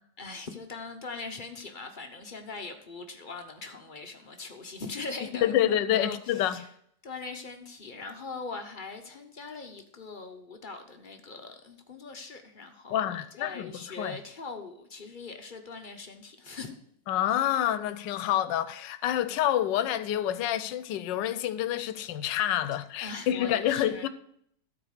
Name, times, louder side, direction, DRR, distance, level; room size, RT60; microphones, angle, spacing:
voice 1, 0.2-6.7 7.0-16.8 23.0-24.1, left 3 dB, 40° left, 0.7 m, -41 dB
voice 2, 5.4-6.6 12.9-14.2 17.1-24.1, left 11 dB, 85° left, 1.3 m, -28 dB
13.0 x 4.6 x 6.5 m
omnidirectional pair, 1.9 m